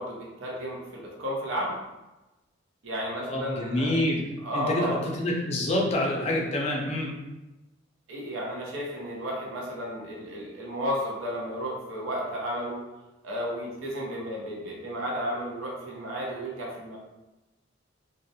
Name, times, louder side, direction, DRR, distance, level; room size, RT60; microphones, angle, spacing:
voice 1, 0.0-1.8 2.8-4.0 4.4-5.0 8.1-12.8 13.2-17.0, equal, 85° right, -3 dB, 0.6 m, -33 dB
voice 2, 3.3-4.3 4.5-7.1, left 1 dB, 35° left, -1 dB, 0.4 m, -27 dB
2.3 x 2.0 x 2.7 m, 1.1 s
head